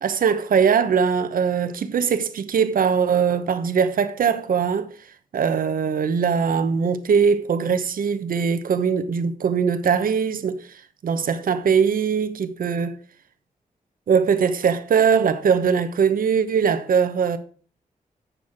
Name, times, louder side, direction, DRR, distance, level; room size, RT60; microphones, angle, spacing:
voice 1, 0.0-4.9 5.3-10.7 11.0-13.0 14.1-17.4, right 6 dB, 70° right, 0.9 m, -21 dB
9.1 x 6.2 x 4.8 m
cardioid pair, 95°, 15 cm